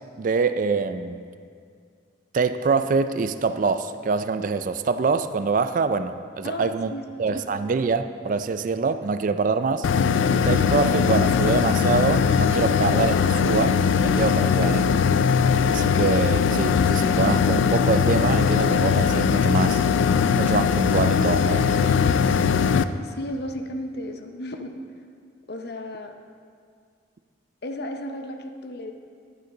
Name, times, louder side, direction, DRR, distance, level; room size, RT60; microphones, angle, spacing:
voice 1, 0.2-1.2 2.3-6.9 7.2-9.9 10.3-14.9 15.7-19.8 20.3-22.0, right 4 dB, 45° right, 11 dB, 0.3 m, -25 dB
voice 2, 6.4-7.0 7.3-7.6 23.0-24.8 25.5-26.2 27.6-28.9, left 1 dB, 55° left, 6 dB, 0.7 m, -34 dB
sound 1, 9.8-22.8, left 6 dB, 75° left, 0.3 m, -20 dB
11.5 x 9.5 x 3.9 m, 2.2 s
head